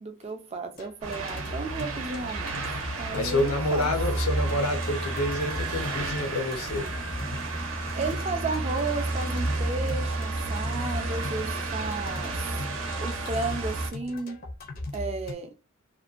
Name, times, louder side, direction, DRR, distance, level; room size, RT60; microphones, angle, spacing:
voice 1, 0.0-2.6 3.0-3.9 7.9-12.6 13.0-14.4 14.9-15.5, right 3 dB, 30° right, 0.4 m, -33 dB
sound 1, 0.8-15.3, left 2 dB, 40° left, 0.5 m, -39 dB
sound 2, 1.0-13.9, right 2 dB, 75° right, 0.6 m, -31 dB
voice 2, 3.1-6.9, left 1 dB, 85° left, 0.6 m, -28 dB
2.5 x 2.2 x 2.4 m
head